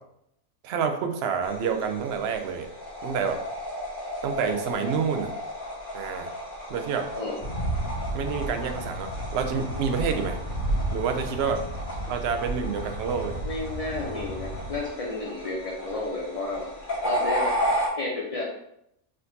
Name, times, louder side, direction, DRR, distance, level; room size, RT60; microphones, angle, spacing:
voice 1, 0.6-2.7 3.0-3.4 4.2-5.3 5.9-6.3 6.7-7.1 8.1-10.4 10.9-11.6 12.1-13.4, right 6 dB, 65° right, 6 dB, 0.6 m, -28 dB
sound 1, 1.4-17.9, equal, 35° left, 1.4 m, -34 dB
sound 2, 7.4-14.8, right 1 dB, 20° left, 1.7 m, -32 dB
voice 2, 13.4-16.7 17.0-17.6 18.0-18.4, left 2 dB, 75° left, -3 dB, 0.3 m, -31 dB
4.3 x 3.8 x 2.6 m, 0.77 s
omnidirectional pair, 1.6 m